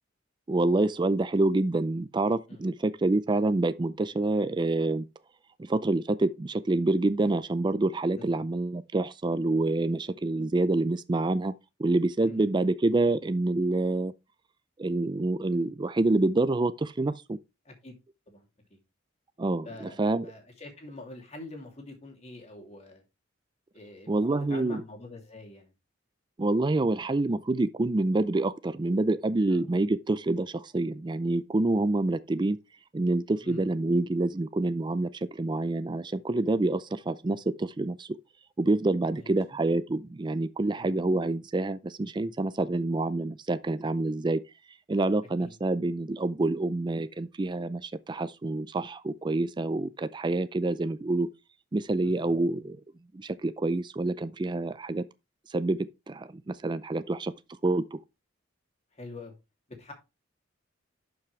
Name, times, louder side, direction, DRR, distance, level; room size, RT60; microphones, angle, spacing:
voice 1, 0.5-5.1 5.6-11.5 11.8-14.1 14.8-17.4 19.4-20.3 24.1-24.8 26.4-32.6 32.9-38.1 38.6-44.4 44.9-51.3 51.7-52.8 53.1-55.0 55.5-57.3 57.6-58.0, right 2 dB, 25° right, 0.4 m, -27 dB
voice 2, 19.6-23.0 23.7-25.7 29.5-29.6 33.4-33.7 39.1-39.3 40.8-40.9 45.4-45.5 52.0-52.3 59.0-59.3 59.8-59.9, left 2 dB, 35° left, 2.6 m, -45 dB
11.5 x 5.9 x 3.2 m
head